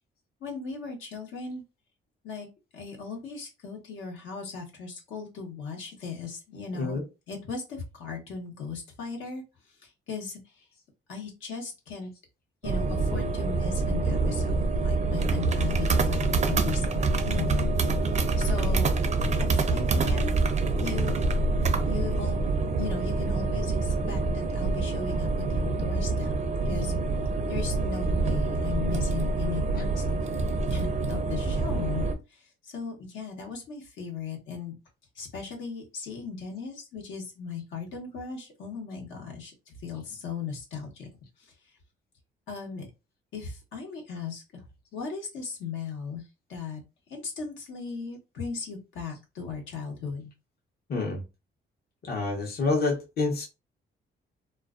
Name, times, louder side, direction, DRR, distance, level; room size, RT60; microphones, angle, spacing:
voice 1, 0.4-1.6 2.2-2.5 2.7-7.0 7.3-9.4 9.8-10.4 11.1-12.1 12.6-18.0 18.4-18.9 19.4-20.4 20.8-21.2 21.8-22.5 22.7-25.3 25.5-26.4 26.7-27.0 27.5-30.2 30.7-32.0 32.7-34.7 35.2-41.1 42.5-42.9 43.3-44.4 44.9-46.2 46.5-46.8 47.1-50.3, left 5 dB, 80° left, 1.0 m, -37 dB
voice 2, 6.7-7.0 50.9-51.2 52.0-53.5, left 3 dB, 50° left, 0.8 m, -28 dB
sound 1, 12.6-32.2, right 3 dB, 35° right, 0.4 m, -26 dB
2.3 x 2.2 x 2.4 m
cardioid pair, 90°, 20 cm